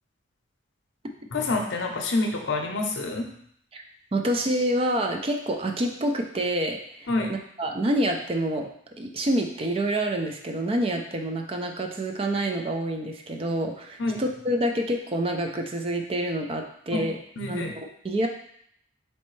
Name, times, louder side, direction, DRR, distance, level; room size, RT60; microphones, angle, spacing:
voice 1, 1.3-3.3 7.1-7.3 14.0-14.2 16.9-17.0 17.4-17.7, left 2 dB, 75° left, 3 dB, 0.7 m, -27 dB
voice 2, 4.1-8.7 9.0-17.2 17.5-17.6 18.0-18.3, right 1 dB, 30° right, 3 dB, 0.4 m, -27 dB
4.1 x 3.2 x 3.1 m, 0.68 s
head